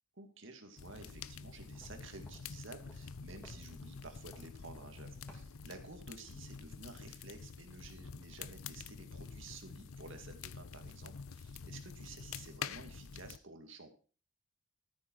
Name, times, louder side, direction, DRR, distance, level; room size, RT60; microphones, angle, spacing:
voice 1, 0.2-13.9, right 3 dB, 60° right, 6 dB, 2.1 m, -52 dB
sound 1, 0.8-13.4, left 6 dB, 80° left, 0.6 m, -48 dB
sound 2, 1.2-6.0, equal, 10° left, 3.3 m, -62 dB
13.5 x 9.2 x 4.6 m, 0.38 s
head